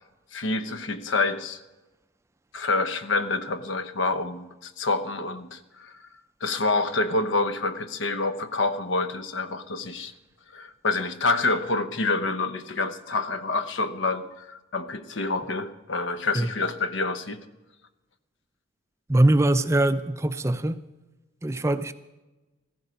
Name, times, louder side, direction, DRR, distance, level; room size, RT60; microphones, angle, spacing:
voice 1, 0.3-1.6 2.5-6.1 6.4-10.1 10.5-17.4, left 3 dB, 70° left, 11 dB, 0.9 m, -27 dB
voice 2, 19.1-20.8 21.4-21.9, right 1 dB, 15° right, 11 dB, 0.4 m, -22 dB
14.5 x 14.5 x 5.2 m, 1.1 s
head